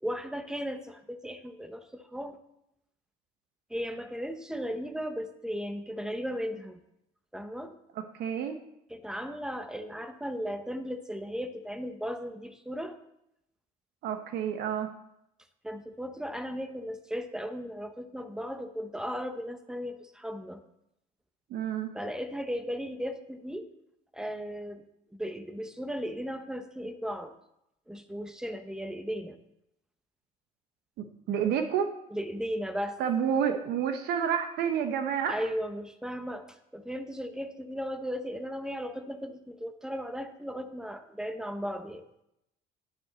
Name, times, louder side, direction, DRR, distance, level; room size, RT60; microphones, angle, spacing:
voice 1, 0.0-2.4 3.7-6.8 7.3-7.7 8.9-13.0 15.6-20.6 21.9-23.7 24.1-24.8 25.1-27.3 27.9-29.4 32.1-33.0 35.3-42.0, equal, 5° right, 8 dB, 0.9 m, -36 dB
voice 2, 7.9-8.6 14.0-14.9 21.5-21.9 31.0-31.9 33.0-35.4, right 8 dB, 80° right, 7 dB, 0.9 m, -29 dB
10.0 x 9.8 x 4.0 m, 0.82 s
cardioid pair, 110°, 17 cm